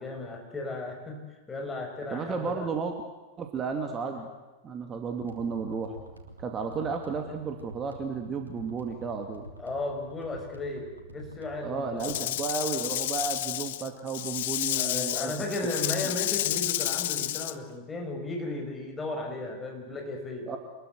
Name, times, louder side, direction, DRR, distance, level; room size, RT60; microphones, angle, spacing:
voice 1, 0.0-2.7 9.6-12.2 14.8-20.5, left 2 dB, 15° left, 2 dB, 6.4 m, -35 dB
voice 2, 2.1-2.9 3.4-4.3 4.6-5.9 6.4-9.5 11.6-15.3 15.8-15.9 20.5-20.6, right 5 dB, 25° right, 5 dB, 2.5 m, -33 dB
sound 1, 5.2-12.2, right 1 dB, 80° right, 3.3 m, -48 dB
Rattle / Rattle (instrument), 12.0-17.5, left 15 dB, 55° left, 0.9 m, -30 dB
27.0 x 21.5 x 8.2 m, 1.2 s
figure-of-eight pair, 90°, 0 cm